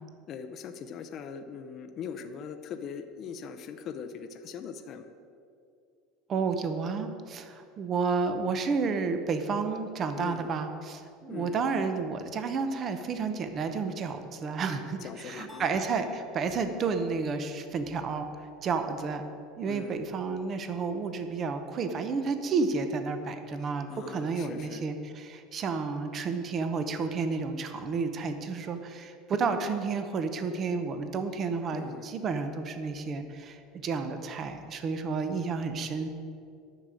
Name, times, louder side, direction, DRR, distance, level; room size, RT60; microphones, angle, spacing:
voice 1, 0.3-5.1 10.1-10.5 11.3-11.6 15.0-15.8 19.6-20.0 23.6-24.8 31.7-32.1, left 6 dB, 30° left, 6 dB, 0.6 m, -41 dB
voice 2, 6.3-18.3 18.6-19.2 19.6-36.1, right 4 dB, 25° right, 8 dB, 0.7 m, -31 dB
sound 1, 15.5-17.6, equal, 5° right, 1.7 m, -53 dB
10.5 x 6.5 x 9.0 m, 2.4 s
cardioid pair, 175°, 0 cm